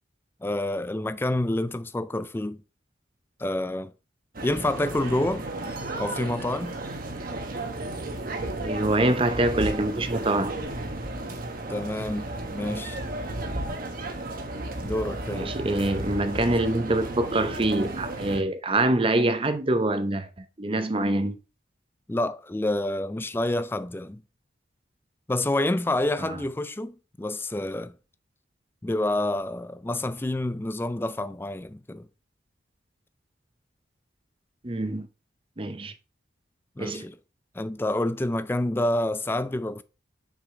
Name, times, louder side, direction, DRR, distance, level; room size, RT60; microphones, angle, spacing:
voice 1, 0.4-2.6 3.4-3.9 4.4-5.5 6.0-6.7 11.7-13.0 14.8-15.5 22.1-24.2 25.3-27.9 28.8-32.1 36.8-37.2 37.5-39.8, left 1 dB, 10° left, 0.3 m, -28 dB
sound 1, 4.3-18.4, right 2 dB, 45° right, 1.0 m, -33 dB
voice 2, 8.6-10.5 15.3-21.4 26.2-26.4 34.6-35.1 35.6-35.9 36.8-37.0, right 2 dB, 30° right, 0.7 m, -25 dB
6.3 x 5.0 x 3.7 m
head